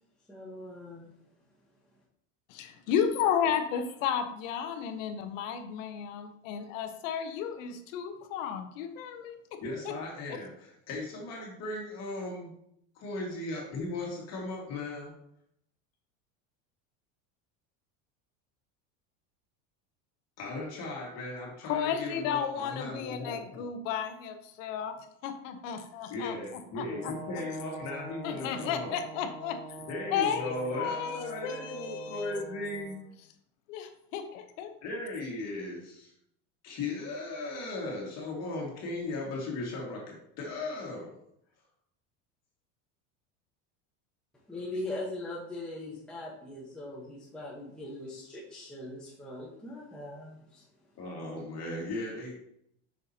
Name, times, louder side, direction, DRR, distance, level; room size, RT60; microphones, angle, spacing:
voice 1, 0.3-1.2 44.5-50.6, left 1 dB, ahead, -6 dB, 1.2 m, -40 dB
voice 2, 2.5-9.6 9.8-9.9 21.6-25.0 25.2-27.1 28.2-29.6 30.1-32.4 33.7-34.7, left 8 dB, 80° left, 7 dB, 1.1 m, -33 dB
voice 3, 9.6-12.5 13.0-15.1 20.4-23.7 26.1-28.9 29.9-33.0 34.8-36.1 36.6-41.2 51.0-52.4, left 2 dB, 40° left, -2 dB, 2.0 m, -37 dB
Brass instrument, 26.9-33.0, right 2 dB, 25° right, 1.7 m, -45 dB
7.4 x 6.0 x 2.8 m, 0.74 s
supercardioid pair, 145°, 38 cm